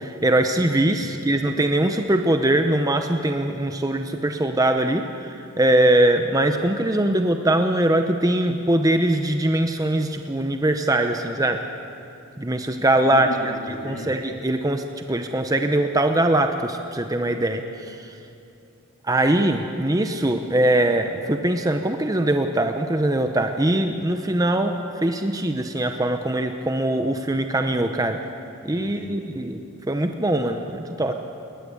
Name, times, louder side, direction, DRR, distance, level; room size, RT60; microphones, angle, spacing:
voice 1, 0.0-11.6 12.4-13.3 13.8-18.1 19.0-28.2 28.6-29.6 29.9-31.1, right 1 dB, 15° right, 6 dB, 0.8 m, -22 dB
voice 2, 1.0-1.3 13.1-14.1 28.7-29.5, left 1 dB, 65° left, 1 dB, 3.2 m, -36 dB
20.0 x 19.5 x 8.5 m, 2.7 s
head